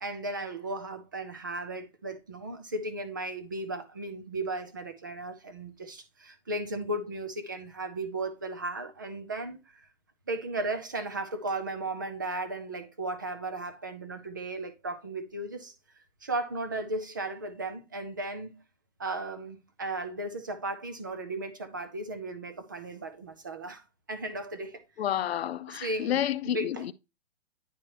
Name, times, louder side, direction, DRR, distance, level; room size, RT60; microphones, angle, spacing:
voice 1, 0.0-9.9 10.3-18.5 19.0-23.8 24.1-24.8 25.7-26.8, right 2 dB, 20° right, 0.4 m, -35 dB
voice 2, 25.0-26.9, left 11 dB, 60° left, 0.6 m, -30 dB
10.0 x 4.6 x 2.9 m
hypercardioid pair, 175°, 36 cm